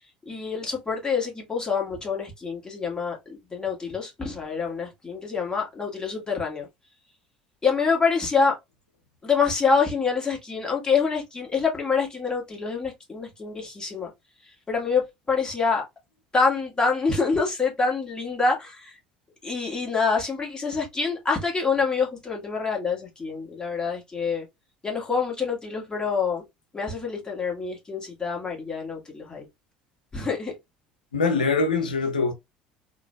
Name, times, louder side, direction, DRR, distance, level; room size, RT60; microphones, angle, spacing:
voice 1, 0.3-6.7 7.6-8.5 9.2-14.1 14.7-15.0 15.3-15.8 16.3-19.0 19.4-24.5 24.8-26.4 26.7-29.5 30.1-30.5, left 5 dB, 15° left, 1.8 m, -26 dB
voice 2, 31.1-32.3, left 4 dB, 90° left, 0.5 m, -23 dB
3.7 x 2.5 x 2.3 m
hypercardioid pair, 70°, 4 cm